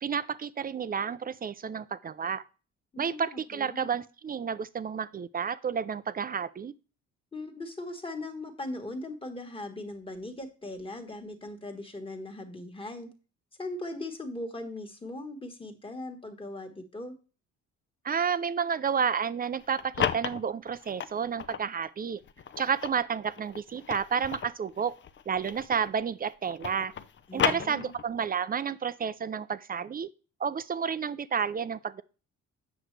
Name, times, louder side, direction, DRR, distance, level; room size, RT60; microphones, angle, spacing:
voice 1, 0.0-2.4 3.0-6.7 18.0-22.2 22.6-24.9 25.3-26.9 27.3-30.1 30.4-32.0, right 7 dB, 30° right, 0.4 m, -31 dB
voice 2, 2.9-3.8 7.3-13.1 13.6-17.1 27.3-27.9, left 2 dB, 15° left, 1.5 m, -39 dB
sound 1, 19.5-21.7 22.2-26.0 26.3-28.3, left 8 dB, 40° left, 0.6 m, -34 dB
8.0 x 6.2 x 3.2 m
cardioid pair, 90°, 30 cm